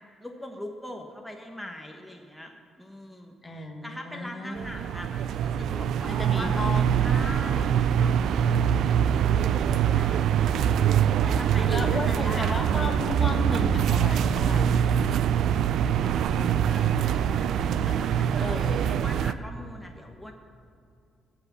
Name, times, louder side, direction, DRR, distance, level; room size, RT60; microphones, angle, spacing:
voice 1, 0.2-2.5 2.8-6.5 7.0-10.4 11.2-12.6 16.0-20.3, left 1 dB, 5° left, 2 dB, 1.1 m, -42 dB
voice 2, 3.4-4.8 6.0-7.1 10.5-10.7 11.0-11.4 11.7-14.8 16.3-17.0 18.4-18.9, left 2 dB, 30° left, 4 dB, 1.3 m, -35 dB
sound 1, 4.6-19.3, right 9 dB, 75° right, 0.4 m, -24 dB
15.5 x 6.0 x 7.2 m, 2.4 s
cardioid pair, 90°, 0 cm